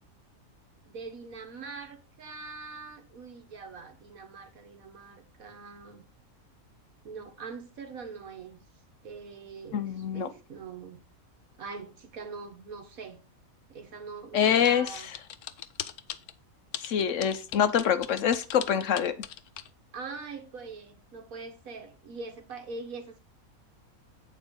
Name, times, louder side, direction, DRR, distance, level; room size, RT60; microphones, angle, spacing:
voice 1, 0.8-6.0 7.0-8.6 9.0-11.0 11.6-13.2 13.7-15.1 19.9-23.2, right 4 dB, 75° right, 1.8 m, -43 dB
voice 2, 9.7-10.3 14.3-15.1 16.8-19.1, left 8 dB, 65° left, 0.9 m, -25 dB
sound 1, 14.6-16.3 16.7-19.7, left 11 dB, 90° left, 1.1 m, -38 dB
8.1 x 4.2 x 5.2 m
omnidirectional pair, 1.5 m